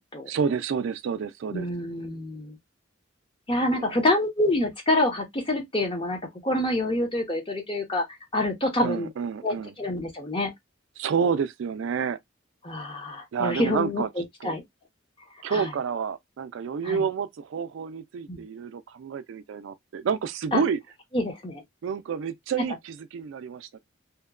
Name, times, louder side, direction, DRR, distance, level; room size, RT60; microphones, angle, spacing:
voice 1, 0.3-1.7 3.8-4.1 8.8-9.7 11.0-12.2 13.3-14.1 14.4-14.6 15.4-20.8 21.8-23.8, right 6 dB, 65° right, 0.3 m, -29 dB
voice 2, 1.5-2.6 3.5-8.0 8.3-9.1 9.4-10.5 12.6-14.6 15.5-15.7 16.8-17.0 18.3-18.4 20.5-20.6 21.1-21.6, left 1 dB, 25° left, 0.7 m, -27 dB
2.8 x 2.1 x 2.3 m
head